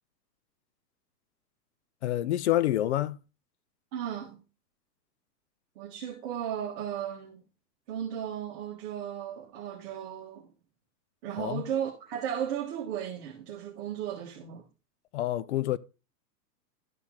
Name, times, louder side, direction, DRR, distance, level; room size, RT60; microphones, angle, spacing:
voice 1, 2.0-3.2 11.4-11.6 15.1-15.8, left 13 dB, 45° left, 0.4 m, -27 dB
voice 2, 3.9-4.4 5.8-7.4 7.9-10.5 11.2-14.6, right 9 dB, 40° right, 1.8 m, -35 dB
12.5 x 4.4 x 3.8 m
hypercardioid pair, 145°, 50 cm